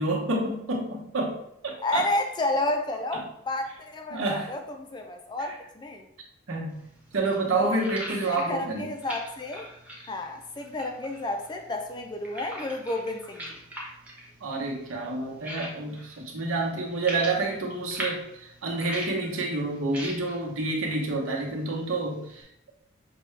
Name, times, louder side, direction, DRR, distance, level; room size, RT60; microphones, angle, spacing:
voice 1, 0.0-1.3 1.6-2.1 4.1-4.5 5.4-5.5 6.5-6.8 7.1-8.9 14.4-22.5, right 2 dB, 80° right, -1 dB, 1.0 m, -28 dB
voice 2, 1.8-6.1 7.6-7.8 8.3-9.7 10.1-13.6, left 2 dB, 20° left, 4 dB, 0.4 m, -31 dB
sound 1, 6.7-22.4, equal, 5° right, 0.8 m, -43 dB
5.9 x 2.3 x 3.2 m, 0.77 s
head